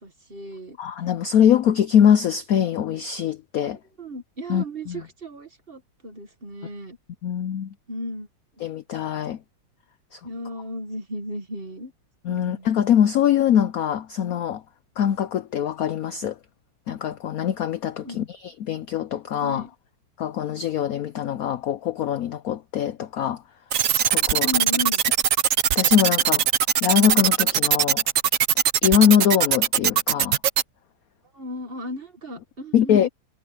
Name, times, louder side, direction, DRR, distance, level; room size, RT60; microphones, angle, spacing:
voice 1, 0.0-0.8 4.0-7.0 7.9-8.3 10.2-11.9 12.3-12.7 18.0-18.2 19.4-19.7 24.3-25.0 31.3-33.1, left 1 dB, 30° right, 1.7 m, -35 dB
voice 2, 0.8-3.8 4.5-5.0 7.2-7.7 8.6-9.4 10.1-10.2 12.2-14.6 15.0-16.4 16.9-19.7 20.2-23.4 23.9-24.5 25.7-26.4 26.8-28.0 28.8-30.4 32.7-33.1, left 9 dB, 80° left, 0.8 m, -22 dB
sound 1, 23.7-30.6, right 9 dB, 55° right, 0.9 m, -20 dB
omnidirectional pair, 2.3 m